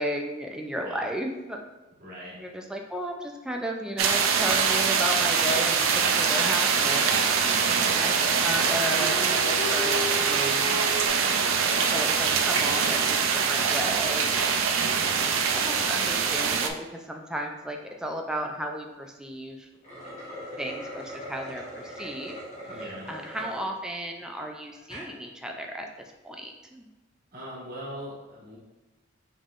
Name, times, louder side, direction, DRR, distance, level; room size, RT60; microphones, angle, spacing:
voice 1, 0.0-1.6 2.4-7.3 8.0-10.8 11.9-14.3 15.3-19.7 20.6-22.4 22.7-25.9 26.2-26.9, equal, 5° right, 2 dB, 0.3 m, -34 dB
voice 2, 2.0-2.4 7.4-7.9 11.3-11.7 14.8-15.2 22.7-23.1 27.3-28.6, equal, 45° right, -7 dB, 1.4 m, -41 dB
sound 1, 4.0-16.7, right 6 dB, 75° right, 0.4 m, -24 dB
Dog, 7.6-11.1, left 2 dB, 65° left, 1.3 m, -36 dB
sound 2, 19.7-23.7 24.2-24.3 24.8-25.1, equal, 35° left, 1.3 m, -40 dB
5.3 x 3.5 x 2.4 m, 1.1 s
head